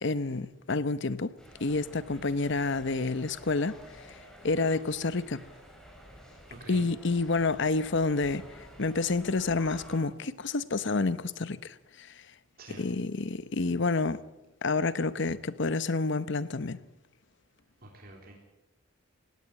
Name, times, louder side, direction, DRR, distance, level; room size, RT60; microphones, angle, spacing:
voice 1, 0.0-1.3 1.6-3.8 4.1-4.2 4.4-5.4 6.7-8.5 8.8-12.1 12.8-14.2 14.6-16.8, left 3 dB, 60° left, 0.9 m, -29 dB
sound 1, 1.4-10.0, equal, 5° left, 5.0 m, -50 dB
voice 2, 6.5-6.9 12.6-12.9 17.8-18.3, right 2 dB, 50° right, 3.5 m, -47 dB
18.5 x 17.0 x 8.8 m
head